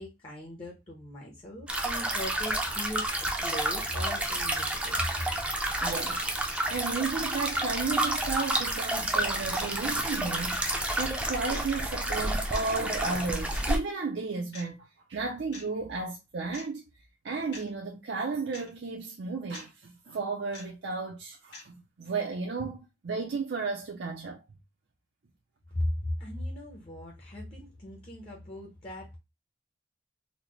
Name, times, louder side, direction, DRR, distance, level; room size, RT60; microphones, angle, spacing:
voice 1, 0.0-5.0 25.7-29.2, left 1 dB, 35° left, 0.8 m, -38 dB
sound 1, 1.7-13.8, right 1 dB, 5° right, 0.5 m, -30 dB
voice 2, 5.8-16.8 17.2-24.4, right 4 dB, 65° right, 0.5 m, -34 dB
sound 2, 6.5-6.7 7.5-7.7 8.5-8.7 9.5-9.7 10.5-10.7 11.5-11.7 12.5-12.7 13.5-13.7 14.5-14.7 15.5-15.7 16.5-16.7 17.5-17.7 18.5-18.7 19.5-19.7 20.5-20.7 21.5-21.7, left 3 dB, 65° left, 1.7 m, -45 dB
4.1 x 2.1 x 3.0 m
head